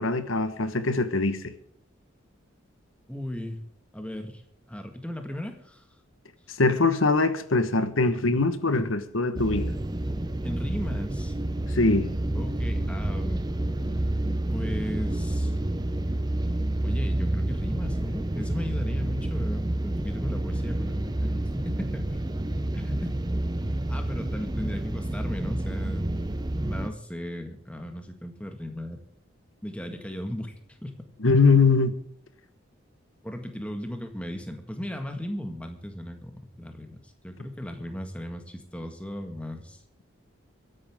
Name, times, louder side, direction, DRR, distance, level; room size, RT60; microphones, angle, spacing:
voice 1, 0.0-1.5 6.6-9.7 11.7-12.1 31.2-32.0, left 3 dB, 80° left, 1.3 m, -22 dB
voice 2, 3.1-3.6 3.9-4.4 4.7-5.9 10.4-11.4 12.3-13.4 14.5-15.6 16.8-22.2 22.7-23.2 23.7-26.1 26.7-29.0 29.6-30.5 30.8-31.1 33.2-39.8, left 1 dB, 5° left, 1.7 m, -36 dB
sound 1, 9.4-26.9, right 1 dB, 20° right, 0.8 m, -29 dB
24.0 x 11.0 x 3.7 m
head